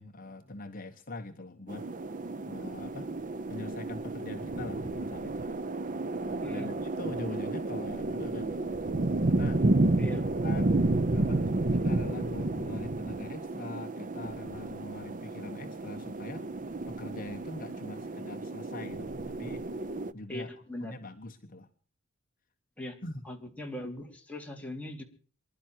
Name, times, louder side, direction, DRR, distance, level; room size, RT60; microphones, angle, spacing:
voice 1, 0.0-1.9 2.5-3.1 3.5-5.5 6.3-8.8 9.3-9.6 10.4-10.8 11.1-16.5 16.9-19.6 20.1-20.5 20.8-21.7 23.0-23.2, left 2 dB, 40° left, 5 dB, 1.2 m, -42 dB
sound 1, 1.7-20.1, right 2 dB, 40° right, 0.7 m, -31 dB
voice 2, 10.0-10.3 20.3-21.0 22.8-23.0 23.2-25.0, left 1 dB, 5° left, 1 dB, 3.3 m, -40 dB
25.5 x 12.0 x 4.5 m, 0.43 s
head